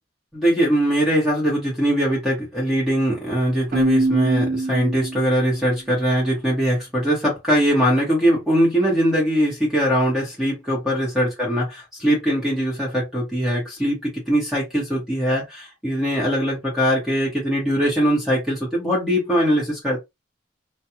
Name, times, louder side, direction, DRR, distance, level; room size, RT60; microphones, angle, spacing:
voice 1, 0.3-20.0, equal, ahead, 1.2 m, -21 dB
Keyboard (musical), 3.7-5.5, right 3 dB, 45° right, 0.5 m, -22 dB
2.5 x 2.4 x 2.8 m
head